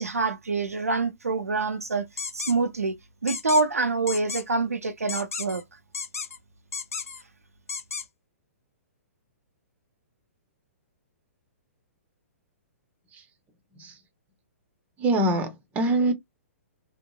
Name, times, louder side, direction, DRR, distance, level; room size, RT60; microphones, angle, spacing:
voice 1, 0.0-2.1 2.3-3.0 3.2-5.6, right 3 dB, 90° right, 0.4 m, -26 dB
sound 1, 2.2-2.5 3.3-3.6 4.1-4.4 5.1-5.6 5.9-6.4 6.7-7.2 7.7-8.0, left 5 dB, 80° left, 0.4 m, -33 dB
voice 2, 15.0-16.1, right 2 dB, 20° right, 0.7 m, -24 dB
2.8 x 2.0 x 2.2 m
figure-of-eight pair, 120°, 8 cm